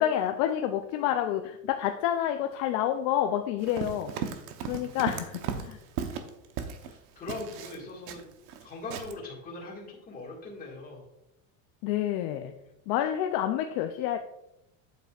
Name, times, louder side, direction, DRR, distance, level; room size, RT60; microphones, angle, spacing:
voice 1, 0.0-4.2 4.6-5.8 11.8-12.5 12.9-14.2, left 11 dB, 55° left, 6 dB, 0.5 m, -28 dB
Run, 3.6-6.9 7.3-8.6 8.9-9.1, right 7 dB, 70° right, 1.0 m, -36 dB
voice 2, 4.6-5.0 6.8-8.3 8.6-11.0, left 2 dB, 20° left, -2 dB, 1.9 m, -41 dB
8.9 x 8.0 x 2.4 m, 0.87 s
cardioid pair, 175°, 44 cm